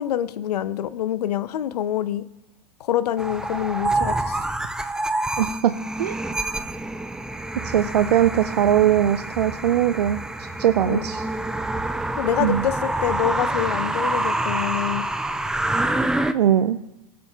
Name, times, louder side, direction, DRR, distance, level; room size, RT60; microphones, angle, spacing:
voice 1, 0.0-2.2 2.8-4.4 10.8-11.0 12.2-15.1, left 11 dB, 80° left, 16 dB, 0.5 m, -26 dB
sound 1, 3.2-16.3, right 2 dB, 5° right, 0.3 m, -27 dB
voice 2, 5.4-5.7 6.0-6.2 7.6-10.2 10.6-11.3 12.4-12.7 16.3-16.8, right 10 dB, 90° right, 11 dB, 0.4 m, -20 dB
18.5 x 7.6 x 2.3 m, 0.94 s
hypercardioid pair, 100°, 20 cm